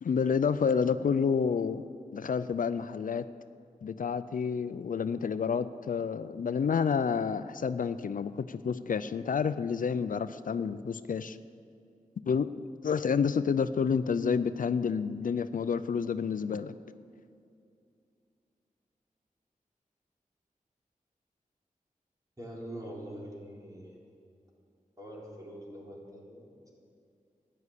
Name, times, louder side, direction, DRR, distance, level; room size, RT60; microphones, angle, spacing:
voice 1, 0.0-1.8 2.1-3.2 3.8-11.4 12.3-12.5 12.8-16.7, left 6 dB, 75° left, 13 dB, 0.4 m, -29 dB
voice 2, 22.4-24.0 25.0-26.7, right 1 dB, 25° right, -4 dB, 4.2 m, -44 dB
14.0 x 9.8 x 8.2 m, 2.5 s
wide cardioid pair, 85°, 14 cm